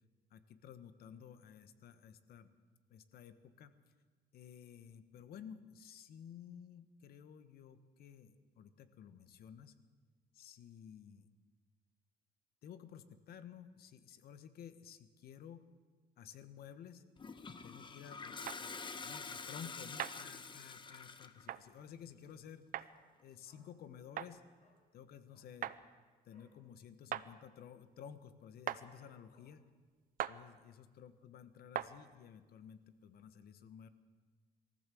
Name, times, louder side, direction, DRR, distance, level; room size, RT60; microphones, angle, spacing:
voice 1, 0.3-2.6 2.9-3.8 4.3-9.8 10.3-11.3 12.6-15.6 16.2-17.0 17.6-22.9 23.2-24.4 24.9-25.7 26.2-29.7 30.3-33.9, left 8 dB, 65° left, 12 dB, 1.4 m, -54 dB
Toilet flush, 17.2-21.5, left 5 dB, 30° left, 1.2 m, -47 dB
sound 1, 18.5-18.6 20.0-20.2 21.5-21.6 22.7-22.9 24.2-24.3 25.6-25.8 27.1-27.3 28.7-28.8 30.2-30.4 31.7-31.9, right 11 dB, 55° right, 0.7 m, -39 dB
Dog, 21.4-21.8 22.1-22.2 22.5-23.9 24.2-24.3 24.6-24.8 25.2-26.6 27.0-27.1 27.4-27.8 28.2-28.3 28.9-29.7 30.2-30.3, left 1 dB, 45° left, 6.7 m, -71 dB
22.5 x 15.0 x 7.8 m, 1.4 s
cardioid pair, 110°, 17 cm